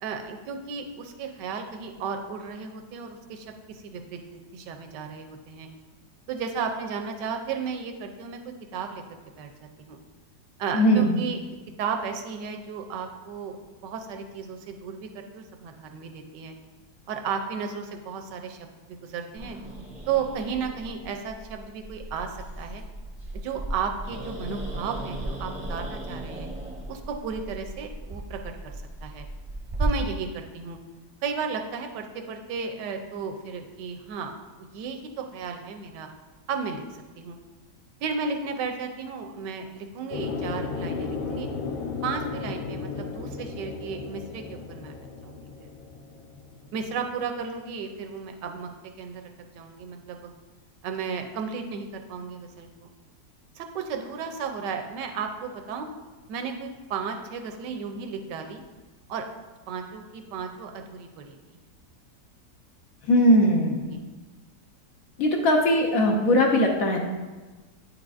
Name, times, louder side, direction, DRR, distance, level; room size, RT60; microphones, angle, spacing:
voice 1, 0.0-5.7 6.3-9.0 9.4-9.5 9.8-10.0 10.6-11.4 11.8-13.6 13.8-16.5 17.1-19.6 20.1-22.8 23.3-26.5 26.9-28.4 29.0-29.3 29.8-30.8 31.2-36.1 36.5-37.4 38.0-41.5 42.0-44.9 45.2-45.7 46.7-48.7 49.0-50.3 50.8-52.9 53.6-55.9 56.3-58.6 59.1-59.2 59.7-61.4 63.9-64.0, right 6 dB, 85° right, 5 dB, 1.3 m, -34 dB
voice 2, 10.7-11.2 63.1-63.9 65.2-67.0, equal, 65° left, 1 dB, 1.0 m, -20 dB
Growling, 19.4-29.9, right 1 dB, 30° right, 0.6 m, -37 dB
sound 1, 40.1-46.9, left 4 dB, 85° left, 1.3 m, -34 dB
9.0 x 4.8 x 2.5 m, 1.3 s
omnidirectional pair, 1.9 m